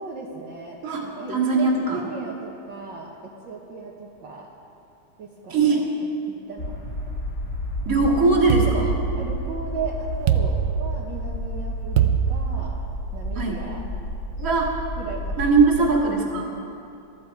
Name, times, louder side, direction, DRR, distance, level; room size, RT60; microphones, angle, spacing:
voice 1, 0.0-4.5 5.2-5.9 6.5-6.8 8.4-8.8 9.2-12.8 13.1-13.8 15.0-15.5 15.8-16.0, right 4 dB, 60° right, -4 dB, 2.0 m, -36 dB
voice 2, 0.8-2.1 5.5-5.8 7.9-8.9 13.4-13.6 14.4-14.7 15.4-16.5, right 3 dB, 40° right, -1 dB, 2.4 m, -21 dB
sound 1, 6.6-15.9, equal, 45° left, 3.6 m, -31 dB
sound 2, 8.5-9.6 10.3-11.3 12.0-13.1, right 10 dB, 80° right, 1.6 m, -23 dB
22.5 x 13.5 x 4.7 m, 2.6 s
omnidirectional pair, 2.4 m